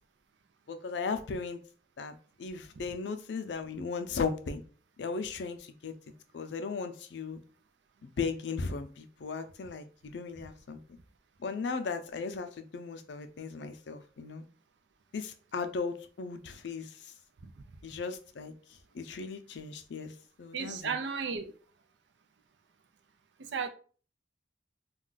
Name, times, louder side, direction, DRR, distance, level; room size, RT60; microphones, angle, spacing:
voice 1, 0.7-1.6 2.0-4.6 5.0-5.9 6.3-7.4 8.0-10.8 11.4-14.4 15.1-17.1 17.8-18.5 18.9-20.1 20.4-20.9, left 4 dB, 80° left, 0.4 m, -36 dB
voice 2, 20.5-21.5 23.4-23.7, right 5 dB, 80° right, 0.5 m, -34 dB
2.4 x 2.2 x 3.9 m
head